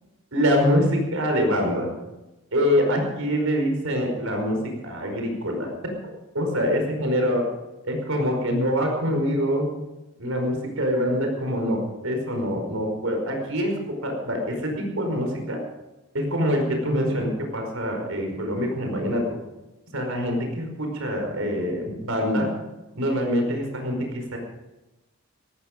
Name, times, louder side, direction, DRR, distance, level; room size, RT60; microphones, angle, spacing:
voice 1, 0.3-1.9 2.5-5.7 6.3-7.4 7.8-9.7 10.2-13.7 14.0-15.6 16.1-19.2 19.9-22.5 22.9-24.4, equal, 75° right, 3 dB, 5.0 m, -25 dB
18.0 x 14.0 x 5.2 m, 1.0 s
head